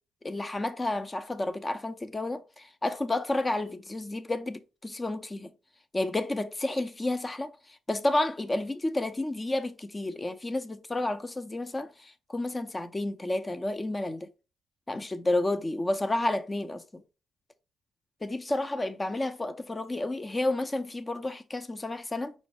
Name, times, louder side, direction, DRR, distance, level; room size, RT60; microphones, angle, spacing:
voice 1, 0.2-5.5 5.9-14.3 14.9-16.8 18.2-22.3, left 2 dB, 20° left, 0.6 m, -31 dB
5.3 x 2.0 x 4.6 m
cardioid pair, 90°, 0 cm